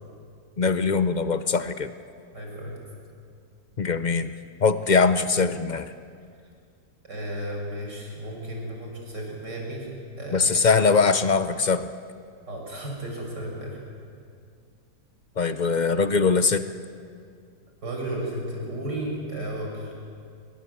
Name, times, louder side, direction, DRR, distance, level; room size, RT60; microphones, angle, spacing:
voice 1, 0.6-1.9 3.8-4.3 4.6-5.9 10.3-11.9 15.4-16.6, left 4 dB, 50° left, 11 dB, 0.5 m, -22 dB
voice 2, 2.3-2.7 7.0-9.9 10.2-11.0 12.5-13.8 17.8-19.9, right 1 dB, 80° right, 0 dB, 6.7 m, -34 dB
26.0 x 22.5 x 8.0 m, 2.3 s
omnidirectional pair, 1.8 m